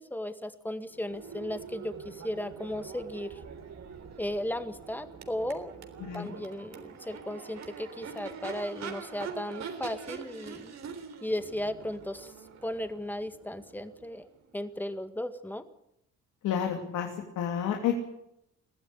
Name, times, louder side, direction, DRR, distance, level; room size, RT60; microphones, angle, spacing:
voice 1, 0.0-3.4 4.2-5.7 6.0-10.8 11.2-12.3 12.6-15.7, left 1 dB, 5° left, 9 dB, 1.9 m, -36 dB
Crowd / Race car auto racing / Accelerating revving vroom, 0.9-14.7, right 6 dB, 60° right, 3.6 m, -44 dB
voice 2, 6.0-6.3 16.4-17.9, left 9 dB, 85° left, 3 dB, 3.0 m, -30 dB
22.0 x 15.5 x 9.8 m, 0.81 s
cardioid pair, 90°, 30 cm